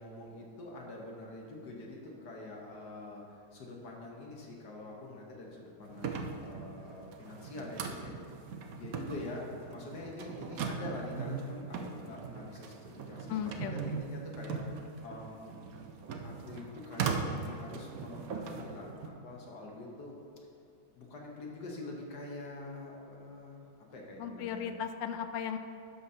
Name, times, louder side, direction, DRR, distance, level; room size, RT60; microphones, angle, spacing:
voice 1, 0.0-8.1 8.7-14.6 15.0-15.5 16.2-20.1 20.9-23.6 23.9-24.7, left 2 dB, 60° left, -1 dB, 1.6 m, -45 dB
sound 1, 5.9-19.1, right 5 dB, 80° right, 0.8 m, -39 dB
voice 2, 13.3-13.7 24.2-25.6, left 8 dB, 75° left, 8 dB, 1.1 m, -36 dB
12.0 x 7.0 x 2.8 m, 2.5 s
omnidirectional pair, 2.2 m